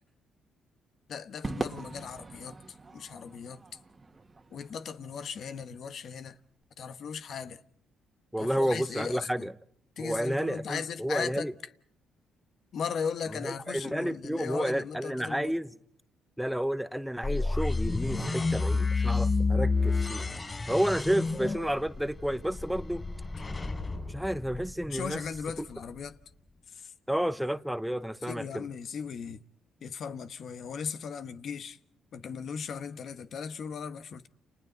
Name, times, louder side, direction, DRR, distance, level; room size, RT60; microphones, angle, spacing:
voice 1, 1.1-2.6 2.9-3.6 4.5-6.4 6.8-7.6 8.4-9.5 10.0-11.5 12.7-15.5 24.9-26.2 28.3-29.4 29.8-31.8 32.1-34.3, left 6 dB, 60° left, 1.2 m, -37 dB
Crowd / Fireworks, 1.4-5.9, right 3 dB, 25° right, 1.7 m, -41 dB
voice 2, 8.3-9.5 10.0-11.5 13.3-15.8 16.4-20.3 20.7-23.0 24.1-25.2 25.6-25.7 27.1-28.7, equal, 5° right, 0.9 m, -31 dB
sound 1, 17.2-25.1, left 3 dB, 25° left, 5.2 m, -30 dB
29.5 x 29.5 x 4.0 m
cardioid pair, 90°, 0 cm